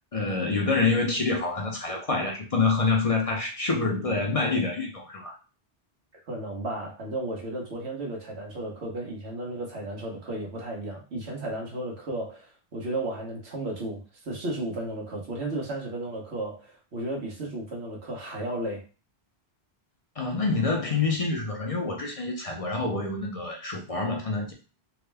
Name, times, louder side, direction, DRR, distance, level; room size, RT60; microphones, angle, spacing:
voice 1, 0.1-5.3 20.2-24.5, left 3 dB, 40° left, 1 dB, 0.6 m, -27 dB
voice 2, 6.3-18.8, right 1 dB, 90° right, -1 dB, 1.4 m, -34 dB
3.6 x 2.1 x 3.3 m, 0.34 s
omnidirectional pair, 1.1 m